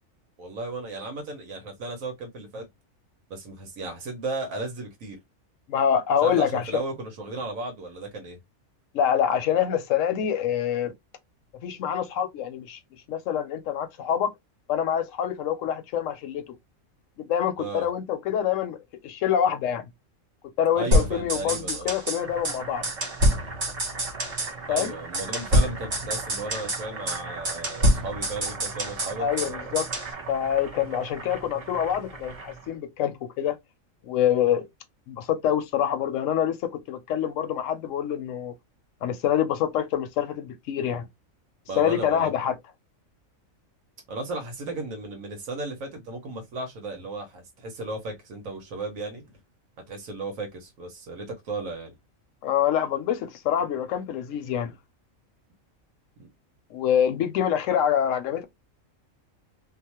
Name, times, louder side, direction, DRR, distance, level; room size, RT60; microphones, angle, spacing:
voice 1, 0.4-2.7 3.3-5.2 6.2-8.4 17.6-17.9 20.7-21.9 24.7-29.7 41.7-42.3 44.1-49.2 49.9-51.9 56.2-56.3, right 2 dB, 75° right, 1.2 m, -35 dB
voice 2, 5.7-6.8 8.9-10.9 11.6-12.8 13.1-14.3 14.7-16.6 17.3-19.8 20.6-22.9 24.7-25.0 29.2-29.9 30.3-33.5 34.0-34.7 35.1-38.6 39.0-41.1 41.8-42.6 52.4-54.7 56.7-58.4, left 9 dB, 75° left, 0.9 m, -26 dB
sound 1, 20.9-22.2 22.5-22.6 22.8-24.5 24.8-24.9 25.1-26.8 27.1-27.2 27.5-29.5 29.8-30.1, equal, 60° right, 1.4 m, -25 dB
Boiling, 22.1-32.7, right 4 dB, 35° right, 0.6 m, -39 dB
2.9 x 2.1 x 2.8 m
omnidirectional pair, 1.4 m